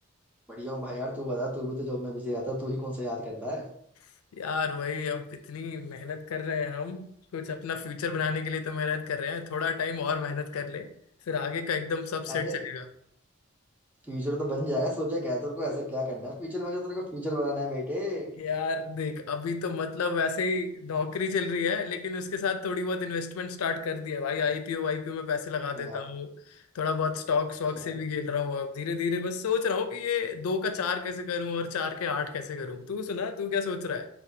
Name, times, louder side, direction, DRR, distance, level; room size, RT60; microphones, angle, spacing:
voice 1, 0.5-3.7 12.3-12.6 14.1-18.3 25.8-26.0 27.8-27.9, equal, 10° right, -2 dB, 0.6 m, -32 dB
voice 2, 4.3-10.9 11.3-12.9 18.4-34.1, left 5 dB, 90° left, 7 dB, 0.4 m, -31 dB
4.0 x 2.3 x 2.7 m, 0.70 s
head